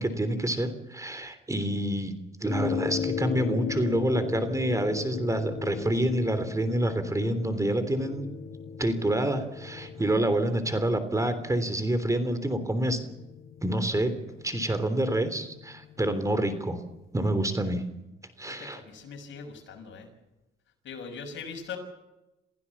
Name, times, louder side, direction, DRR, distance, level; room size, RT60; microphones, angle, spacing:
voice 1, 0.0-2.1 2.4-8.3 8.8-13.0 13.6-14.1 14.4-16.8 17.1-17.8 18.4-18.8, right 1 dB, 15° right, 11 dB, 3.3 m, -27 dB
sound 1, 2.5-17.0, left 7 dB, 45° left, 1.6 m, -38 dB
voice 2, 18.4-20.1 20.8-21.8, left 5 dB, 70° left, 4 dB, 6.2 m, -41 dB
28.5 x 16.0 x 7.2 m, 0.97 s
cardioid pair, 90°, 20 cm